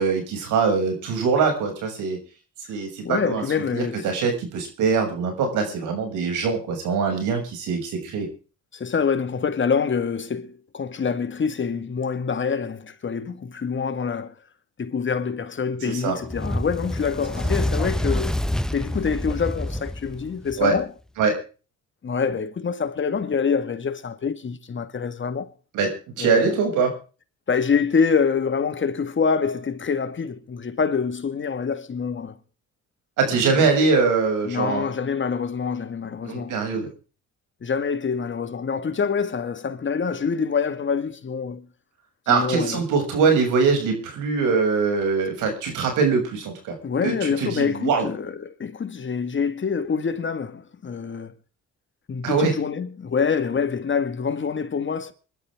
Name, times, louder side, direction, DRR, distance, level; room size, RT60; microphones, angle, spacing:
voice 1, 0.0-2.2 2.7-8.3 15.8-16.2 20.6-20.8 21.2-21.4 25.7-26.9 33.2-34.9 36.2-36.9 42.3-46.8 47.0-48.1 52.2-52.5, right 5 dB, 90° right, 7.0 m, -23 dB
voice 2, 3.0-4.1 8.7-14.3 14.8-18.3 18.7-20.9 22.0-25.5 26.2-26.6 27.5-32.4 33.3-33.7 34.5-36.8 37.6-41.7 42.3-42.8 46.8-51.3 52.1-55.1, left 6 dB, 40° left, 1.9 m, -26 dB
Fire, 16.2-20.8, left 1 dB, ahead, 0.9 m, -27 dB
25.5 x 12.0 x 3.7 m
cardioid pair, 90°, 30 cm